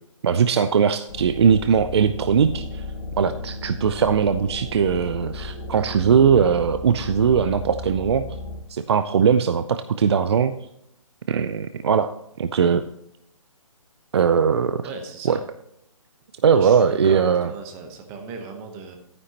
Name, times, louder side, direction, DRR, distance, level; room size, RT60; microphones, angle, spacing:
voice 1, 0.2-2.9 3.2-8.3 8.7-10.5 11.3-12.1 12.4-12.8 14.1-14.9 15.2-15.4 16.4-17.5, right 7 dB, 50° right, 11 dB, 0.4 m, -20 dB
sound 1, 1.1-8.6, left 2 dB, 60° left, 3.9 m, -34 dB
voice 2, 14.8-15.4 16.5-19.0, right 4 dB, 15° right, 5 dB, 1.0 m, -37 dB
11.5 x 9.6 x 2.9 m, 0.79 s
hypercardioid pair, 165°, 18 cm